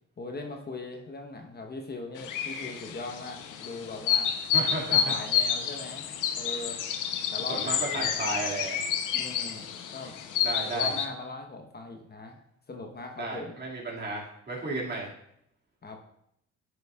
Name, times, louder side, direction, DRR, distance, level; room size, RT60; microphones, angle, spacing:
voice 1, 0.2-4.3 4.9-6.1 6.4-6.8 7.3-8.4 9.1-10.2 10.7-12.4 12.7-13.6 15.8-16.0, left 2 dB, 35° left, 3 dB, 1.0 m, -40 dB
sound 1, 2.2-11.1, left 8 dB, 90° left, 0.8 m, -29 dB
voice 2, 4.5-5.0 7.5-8.8 10.4-10.9 13.2-15.1, right 2 dB, 35° right, -2 dB, 2.1 m, -33 dB
11.0 x 6.2 x 2.3 m, 0.74 s
cardioid pair, 90°, 30 cm